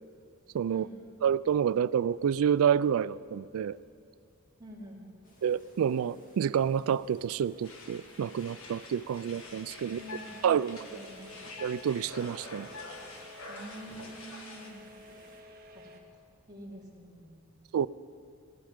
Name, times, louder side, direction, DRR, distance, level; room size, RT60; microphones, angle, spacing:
voice 1, 0.5-0.9 1.2-3.8 5.4-10.0 10.4-11.0 11.6-12.7 17.7-17.9, right 8 dB, 70° right, 19 dB, 0.3 m, -28 dB
voice 2, 4.6-5.0 9.8-10.4 10.9-11.2 13.5-14.9 15.7-15.9 16.5-17.4, equal, 20° right, -5 dB, 2.7 m, -47 dB
sound 1, 5.2-15.4, left 1 dB, 35° left, 2.1 m, -58 dB
sound 2, 7.6-14.7, left 2 dB, 70° left, 1.5 m, -47 dB
sound 3, 8.4-16.0, left 1 dB, 45° right, 1.1 m, -53 dB
17.5 x 12.5 x 5.1 m, 2.4 s
head